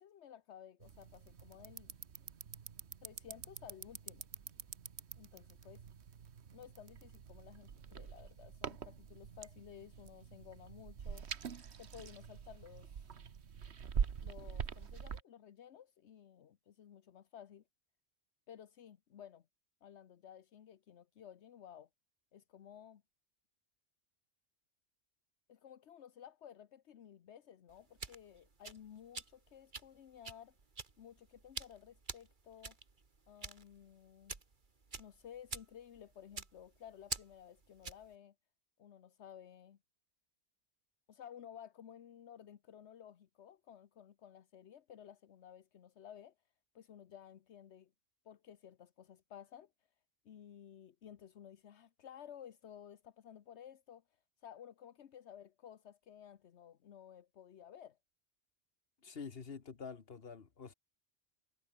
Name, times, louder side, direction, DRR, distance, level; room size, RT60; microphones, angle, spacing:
voice 1, 0.0-2.0 3.0-4.2 5.2-5.9 6.5-11.3 11.8-13.0 14.2-17.6 18.5-19.5 19.8-21.9 22.3-23.0 25.5-30.5 31.0-32.8 33.3-34.4 35.0-38.3 38.8-39.8 41.1-46.3 46.7-47.9 48.2-49.7 50.2-58.0, left 9 dB, 75° left, 1.2 m, -55 dB
sound 1, 0.8-15.2, right 7 dB, 75° right, 1.4 m, -45 dB
sound 2, 27.7-38.1, right 4 dB, 45° right, 1.9 m, -48 dB
voice 2, 59.0-60.7, left 5 dB, 60° left, 1.7 m, -47 dB
omnidirectional pair, 1.1 m